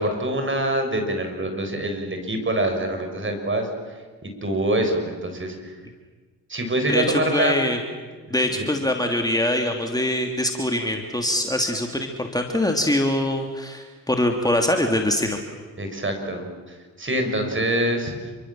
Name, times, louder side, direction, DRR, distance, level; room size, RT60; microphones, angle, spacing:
voice 1, 0.0-5.8 6.5-7.6 8.3-8.7 15.8-18.3, right 1 dB, 30° right, 5 dB, 7.2 m, -25 dB
voice 2, 7.3-7.8 8.3-15.4, left 1 dB, 10° left, 3 dB, 3.0 m, -23 dB
28.5 x 24.0 x 7.7 m, 1.4 s
supercardioid pair, 60°, 39 cm